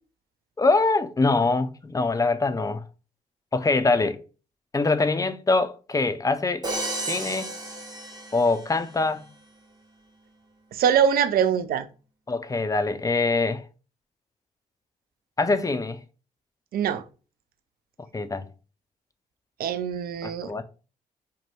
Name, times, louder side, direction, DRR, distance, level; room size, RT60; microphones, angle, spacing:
voice 1, 0.6-2.8 3.5-4.2 4.7-6.7 7.1-7.5 8.3-9.3 12.3-13.6 15.4-16.0 18.1-18.5 20.2-20.6, left 3 dB, 20° left, 0.4 m, -24 dB
Crash cymbal, 6.6-8.8, right 2 dB, 25° right, 0.9 m, -33 dB
voice 2, 10.7-11.9 16.7-17.0 19.6-20.5, right 8 dB, 60° right, 0.4 m, -23 dB
2.6 x 2.1 x 3.2 m
hypercardioid pair, 45°, 17 cm